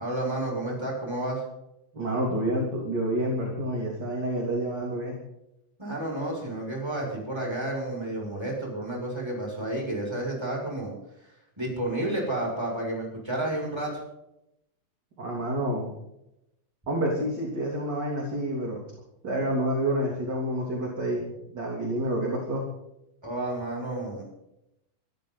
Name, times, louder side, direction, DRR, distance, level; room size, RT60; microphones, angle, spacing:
voice 1, 0.0-1.4 5.8-10.9 11.6-14.0 23.2-24.3, right 1 dB, 5° right, -2 dB, 6.7 m, -31 dB
voice 2, 1.9-5.2 15.2-15.9 16.9-18.8 19.2-22.6, right 1 dB, 35° right, -2 dB, 3.6 m, -28 dB
25.0 x 13.5 x 4.1 m, 0.84 s
omnidirectional pair, 3.6 m